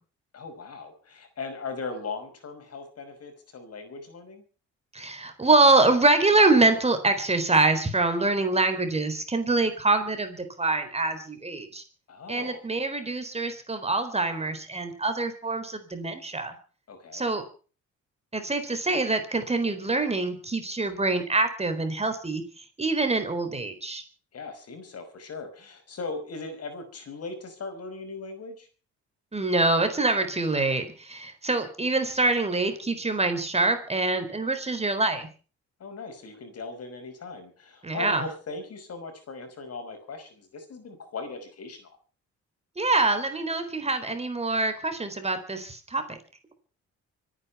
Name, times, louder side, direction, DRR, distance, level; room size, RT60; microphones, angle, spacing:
voice 1, 0.3-4.4 12.1-12.6 16.9-17.3 24.3-28.7 35.8-41.9, left 4 dB, 55° left, 7 dB, 5.4 m, -38 dB
voice 2, 4.9-11.8 12.3-16.6 17.1-17.4 18.3-22.4 22.8-24.0 29.3-35.3 37.8-38.3 42.8-46.2, right 2 dB, 20° right, 8 dB, 4.2 m, -25 dB
25.0 x 10.0 x 5.7 m, 0.40 s
cardioid pair, 90°, 30 cm